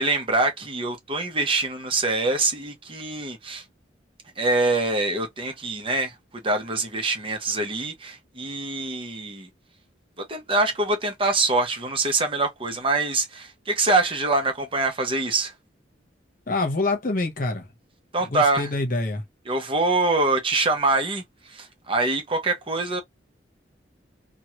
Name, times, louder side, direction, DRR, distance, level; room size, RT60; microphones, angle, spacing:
voice 1, 0.0-3.6 4.4-9.5 10.2-15.5 18.1-18.7 19.5-23.0, right 2 dB, 30° right, 0.9 m, -24 dB
voice 2, 16.5-17.7 18.3-19.2, left 2 dB, 50° left, 1.0 m, -26 dB
3.1 x 2.3 x 2.9 m
head